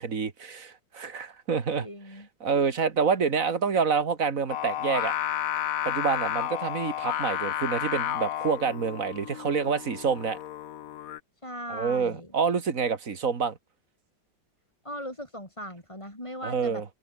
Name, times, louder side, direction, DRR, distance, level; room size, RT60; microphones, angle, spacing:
voice 1, 0.0-1.9 2.4-5.1 5.8-10.4 11.7-13.6 16.4-16.8, right 5 dB, 45° right, 2.2 m, -27 dB
voice 2, 1.7-2.3 11.4-12.3 14.8-16.8, equal, 15° left, 6.1 m, -39 dB
Singing, 4.5-11.2, left 12 dB, 65° left, 1.0 m, -32 dB
omnidirectional pair, 2.0 m